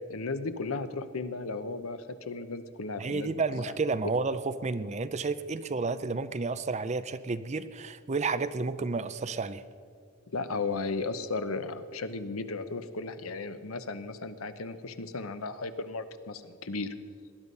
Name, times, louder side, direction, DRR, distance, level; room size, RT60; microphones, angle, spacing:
voice 1, 0.1-3.6 10.3-16.9, left 3 dB, 85° left, 11 dB, 0.9 m, -35 dB
voice 2, 3.0-9.6, right 4 dB, 35° right, 13 dB, 0.5 m, -31 dB
19.0 x 11.5 x 5.4 m, 2.2 s
head